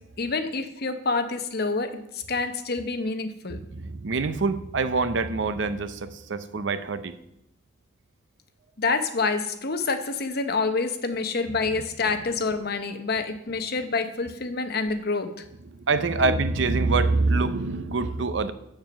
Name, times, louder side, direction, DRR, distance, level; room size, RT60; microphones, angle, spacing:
voice 1, 0.2-2.0 2.3-3.6 8.8-15.3 16.2-16.3, left 4 dB, 55° left, 8 dB, 0.9 m, -27 dB
voice 2, 3.5-7.1 15.7-18.5, right 3 dB, 75° right, 12 dB, 0.7 m, -25 dB
7.6 x 7.2 x 6.3 m, 0.79 s
head